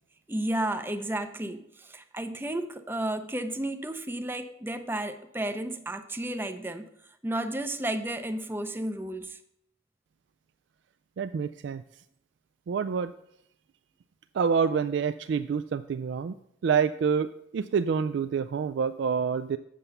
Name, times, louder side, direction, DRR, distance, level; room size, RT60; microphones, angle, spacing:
voice 1, 0.3-6.9 7.2-9.4, right 1 dB, 10° right, 8 dB, 0.5 m, -32 dB
voice 2, 11.2-11.8 12.7-13.1 14.3-16.3 16.6-19.6, right 6 dB, 65° right, 11 dB, 0.3 m, -27 dB
7.6 x 6.7 x 7.0 m, 0.76 s
head